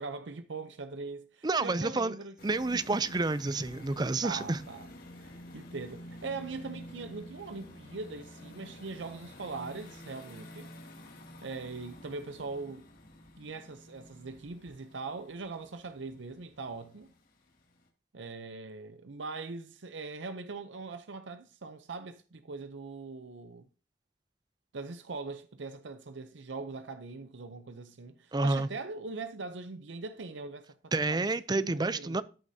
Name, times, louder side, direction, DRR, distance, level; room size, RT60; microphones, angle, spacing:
voice 1, 0.0-2.4 2.9-3.0 4.2-4.9 5.2-10.7 11.4-12.9 13.4-17.1 18.1-23.7 24.7-31.3 31.5-32.2, right 3 dB, 80° right, 0.7 m, -41 dB
voice 2, 1.4-2.1 2.4-4.6 28.3-28.7 30.9-32.2, right 3 dB, 20° right, 0.5 m, -29 dB
sound 1, 2.4-17.9, left 1 dB, 50° left, 2.5 m, -50 dB
14.0 x 8.3 x 2.8 m
head